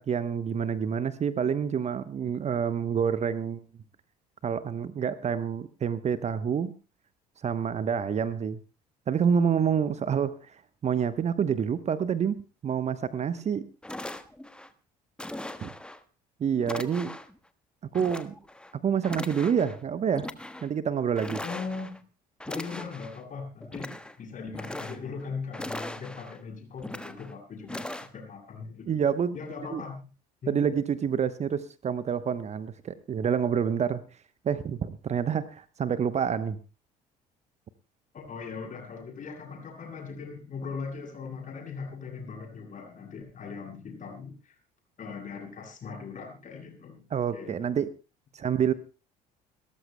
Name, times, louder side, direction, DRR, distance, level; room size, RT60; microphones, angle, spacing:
voice 1, 0.0-3.6 4.4-6.7 7.4-8.6 9.1-12.4 12.6-13.6 15.6-15.7 16.4-17.1 17.9-18.3 18.7-20.3 20.6-21.4 28.9-29.3 29.7-29.8 30.5-34.0 34.4-36.6 47.1-47.9 48.3-48.7, right 7 dB, 35° right, 14 dB, 0.9 m, -27 dB
sound 1, 13.4-13.5 13.8-14.7 15.2-16.0 16.6-17.4 17.9-18.7 19.0-19.8 20.1-20.7 21.2-22.0 22.4-23.2 23.6-24.2 24.5-25.2 25.5-26.4 26.8-27.3 27.7-28.1, left 1 dB, 5° left, 1.2 m, -39 dB
voice 2, 21.4-22.0 22.5-28.9 29.3-30.0 30.4-30.7 38.1-44.6 45.0-47.7, left 5 dB, 40° left, 2 dB, 7.5 m, -39 dB
29.5 x 14.0 x 2.2 m, 0.34 s
figure-of-eight pair, 55°, 20 cm